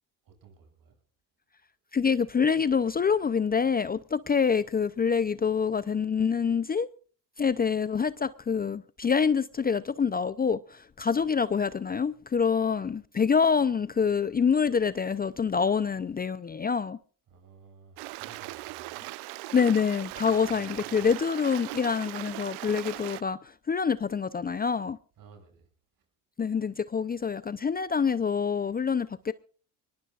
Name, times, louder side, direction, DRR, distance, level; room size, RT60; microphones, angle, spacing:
voice 1, 0.2-0.9 17.3-19.0 20.1-20.3 20.7-20.8 25.2-25.7, right 5 dB, 55° right, 6.8 m, -54 dB
voice 2, 1.9-6.9 7.4-17.0 19.5-25.0 26.4-29.3, left 6 dB, 25° left, 0.6 m, -26 dB
Stream, 18.0-23.2, right 21 dB, 75° right, 0.7 m, -39 dB
23.0 x 20.0 x 2.5 m
supercardioid pair, 75°, 40 cm